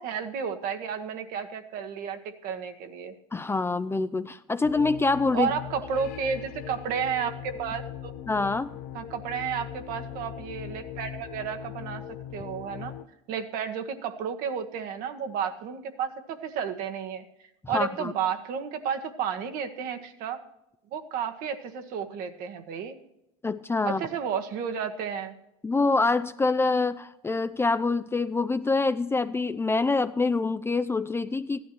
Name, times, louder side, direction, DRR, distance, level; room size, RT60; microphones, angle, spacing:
voice 1, 0.0-3.1 5.3-8.1 8.9-12.0 12.3-12.9 13.3-17.2 17.7-20.4 20.9-23.0 23.8-25.3, right 7 dB, 60° right, 7 dB, 1.4 m, -32 dB
voice 2, 3.3-5.5 8.3-8.7 17.7-18.1 23.4-24.0 25.6-31.6, left 3 dB, 15° left, 12 dB, 0.5 m, -25 dB
sound 1, 4.6-13.0, left 11 dB, 60° left, 0.8 m, -40 dB
15.5 x 11.5 x 3.0 m, 0.85 s
hypercardioid pair, 80°, 17 cm